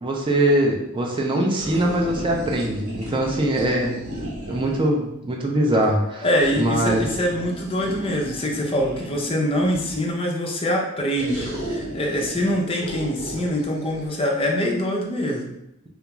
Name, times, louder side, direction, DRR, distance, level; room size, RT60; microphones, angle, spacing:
voice 1, 0.0-6.3 6.6-7.1, right 1 dB, 20° right, -1 dB, 0.4 m, -22 dB
sound 1, 1.6-4.9 6.4-10.2 11.1-14.1, right 1 dB, 80° right, 1.1 m, -35 dB
voice 2, 6.2-15.5, equal, 25° left, -1 dB, 0.5 m, -24 dB
3.4 x 2.3 x 3.0 m, 0.83 s
head